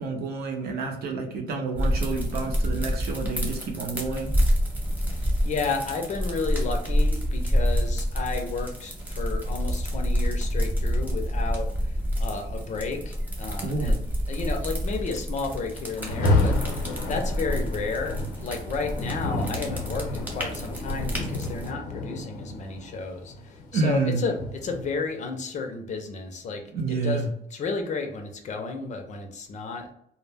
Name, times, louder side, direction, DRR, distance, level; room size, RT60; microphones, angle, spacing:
voice 1, 0.0-4.3 13.6-13.9 23.7-24.2 26.7-27.3, right 3 dB, 70° right, 2 dB, 0.7 m, -29 dB
sound 1, 1.8-21.7, equal, 10° right, 1.0 m, -28 dB
voice 2, 5.1-14.0 14.3-26.6 26.9-29.9, left 4 dB, 45° left, 4 dB, 0.5 m, -32 dB
Rain, 15.9-25.0, left 2 dB, 90° left, 0.7 m, -30 dB
2.1 x 2.1 x 3.3 m, 0.72 s
cardioid pair, 110°, 17 cm